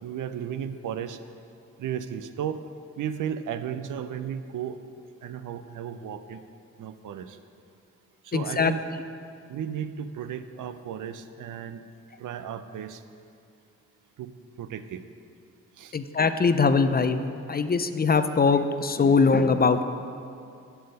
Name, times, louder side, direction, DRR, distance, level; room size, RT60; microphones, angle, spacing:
voice 1, 0.0-1.2 1.8-2.6 3.0-4.8 5.2-6.4 6.8-7.4 8.2-8.8 9.5-11.8 12.2-13.0 14.2-14.3 14.6-15.0 15.8-15.9, right 9 dB, 75° right, 11 dB, 0.5 m, -34 dB
voice 2, 8.3-8.7 15.9-19.8, left 4 dB, 30° left, 10 dB, 0.5 m, -22 dB
7.6 x 6.9 x 5.3 m, 2.4 s
supercardioid pair, 50°, 32 cm